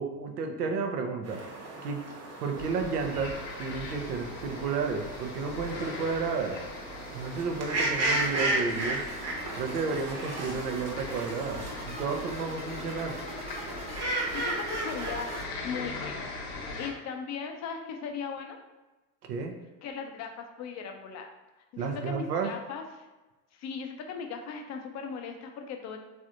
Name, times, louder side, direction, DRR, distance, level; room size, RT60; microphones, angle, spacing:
voice 1, 0.0-1.4 1.8-2.0 2.4-3.3 3.6-6.6 7.1-9.0 9.5-13.2 19.3-19.5 21.8-22.5, right 5 dB, 85° right, 4 dB, 0.6 m, -32 dB
sound 1, 1.2-15.4, right 2 dB, 35° right, 1.0 m, -35 dB
sound 2, 2.6-16.9, left 3 dB, 60° left, 0.9 m, -41 dB
sound 3, 9.1-15.4, right 1 dB, 15° right, 0.5 m, -44 dB
voice 2, 14.3-15.3 15.6-16.2 16.8-18.6 19.8-21.3 21.7-23.1 23.5-26.0, left 6 dB, 35° left, 4 dB, 0.5 m, -38 dB
3.3 x 2.6 x 2.5 m, 1.1 s
hypercardioid pair, 75°, 47 cm